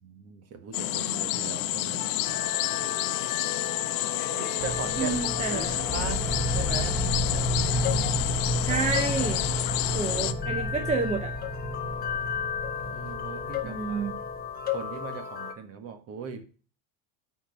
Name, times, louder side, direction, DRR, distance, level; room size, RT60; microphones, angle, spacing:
voice 1, 0.0-2.1 4.3-6.3 6.5-7.0 12.8-14.1 14.7-16.4, right 6 dB, 35° right, 1.5 m, -39 dB
sound 1, 0.7-10.3, left 15 dB, 75° left, 0.8 m, -30 dB
sound 2, 2.2-15.5, left 8 dB, 25° left, 0.8 m, -35 dB
sound 3, 4.6-14.8, equal, ahead, 1.9 m, -31 dB
voice 2, 5.0-5.8 8.6-9.4 9.9-11.3 13.6-14.1, right 5 dB, 15° right, 0.6 m, -29 dB
8.3 x 4.6 x 7.1 m
cardioid pair, 170°, 40 cm